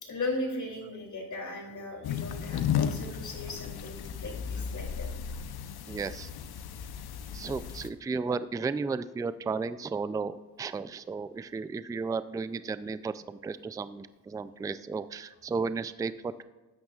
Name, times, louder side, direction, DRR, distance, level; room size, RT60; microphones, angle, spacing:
voice 1, 0.0-5.1, left 2 dB, 45° left, 0 dB, 3.0 m, -37 dB
sound 1, 2.0-7.9, left 8 dB, 70° left, 0.8 m, -34 dB
voice 2, 5.9-6.3 7.3-16.4, right 4 dB, 10° right, 14 dB, 0.3 m, -34 dB
13.0 x 8.9 x 2.4 m, 1.2 s
cardioid pair, 75°, 40 cm